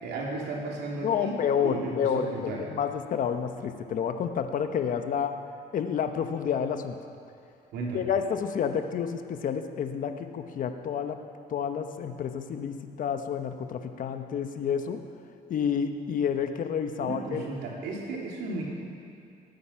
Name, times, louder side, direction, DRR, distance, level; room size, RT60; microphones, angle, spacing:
voice 1, 0.0-1.3 1.6-2.6 7.7-8.1 17.0-18.6, right 2 dB, 80° right, -2 dB, 3.3 m, -34 dB
voice 2, 1.0-5.3 5.7-7.0 7.9-11.2 11.5-15.0 15.5-17.4, left 7 dB, 55° left, 7 dB, 1.1 m, -29 dB
20.0 x 9.4 x 5.8 m, 2.5 s
cardioid pair, 110°, 17 cm